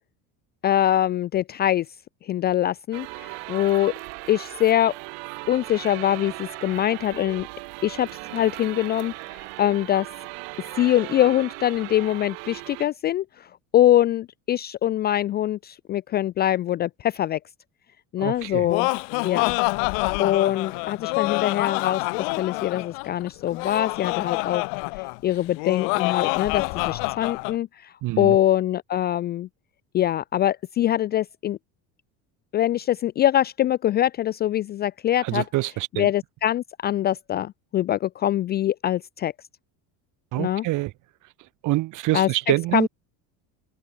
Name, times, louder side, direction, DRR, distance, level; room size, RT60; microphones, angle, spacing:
voice 1, 0.6-1.9 2.2-3.9 4.3-4.9 5.5-7.5 7.8-10.1 10.8-13.5 13.7-17.4 18.1-18.9 19.2-19.6 20.2-22.0 22.4-24.6 25.0-29.5 29.9-31.6 32.5-35.4 36.0-39.3 40.4-40.6 42.1-42.3 42.7-42.9, left 12 dB, 25° left, 0.4 m, -23 dB
sound 1, 2.9-12.9, right 40 dB or more, 75° right, 2.3 m, -38 dB
voice 2, 18.2-18.7 28.0-28.4 35.2-36.1 40.3-40.9 41.6-42.9, right 19 dB, 50° right, 4.3 m, -26 dB
Laughter, 18.4-27.6, left 40 dB or more, 85° left, 1.2 m, -27 dB
cardioid pair, 165°, 38 cm